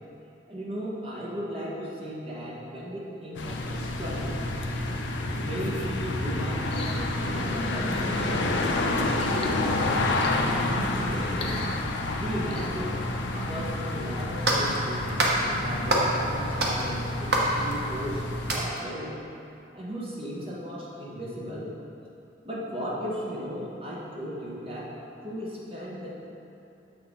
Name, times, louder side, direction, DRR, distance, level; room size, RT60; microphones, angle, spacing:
voice 1, 0.5-4.4 5.4-11.6 12.2-13.0 13.3-18.2 18.5-19.2 19.7-21.7 22.4-24.9 25.2-26.1, equal, 30° right, -6 dB, 1.2 m, -36 dB
sound 1, 3.3-18.6, left 2 dB, 85° left, 0.6 m, -29 dB
sound 2, 6.7-7.1 7.7-8.1 9.2-9.6 10.2-10.5 11.3-11.8 12.5-12.7, left 3 dB, 30° left, 0.5 m, -40 dB
sound 3, 13.9-14.0 14.5-14.8 15.2-15.4 15.9-16.2 16.6-18.1 18.5-18.8, right 1 dB, 65° right, 0.9 m, -25 dB
6.6 x 6.3 x 3.7 m, 2.8 s
head